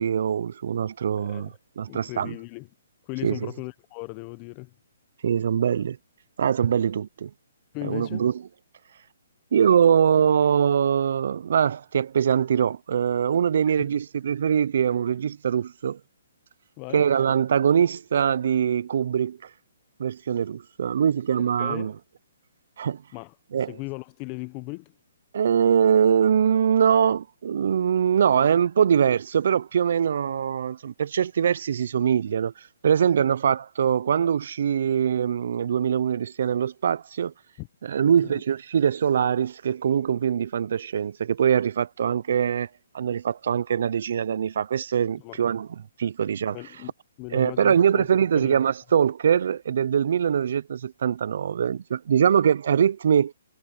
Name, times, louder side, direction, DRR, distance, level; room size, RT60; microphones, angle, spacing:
voice 1, 0.0-2.3 3.2-3.5 5.2-6.0 6.4-7.3 7.8-8.3 9.5-16.0 16.9-19.4 20.0-21.9 22.8-23.0 23.5-23.7 25.3-32.5 32.8-37.3 37.8-42.7 42.9-45.7 46.0-46.6 47.3-53.3, right 8 dB, 60° right, 0.6 m, -23 dB
voice 2, 1.2-1.5 1.9-2.7 3.0-4.7 7.7-8.3 16.8-17.1 21.4-21.9 23.1-23.3 23.7-24.9 37.6-37.7 38.0-38.4 45.2-45.4 46.5-46.9 47.2-48.1 48.3-48.6, left 27 dB, 30° left, 1.2 m, -37 dB
hypercardioid pair, 145°, 0 cm